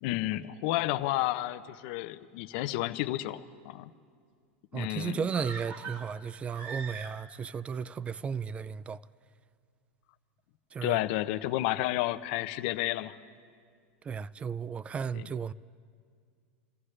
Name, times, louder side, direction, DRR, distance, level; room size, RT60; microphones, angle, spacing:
voice 1, 0.0-3.9 4.7-5.2 10.8-13.1 15.1-15.2, left 16 dB, 60° left, 0.7 m, -31 dB
voice 2, 4.7-9.0 10.7-11.0 14.0-15.5, right 6 dB, 20° right, 0.3 m, -34 dB
sound 1, 5.3-7.5 7.8-7.9, right 5 dB, 45° right, 1.8 m, -42 dB
28.0 x 14.5 x 3.3 m
supercardioid pair, 130°, 7 cm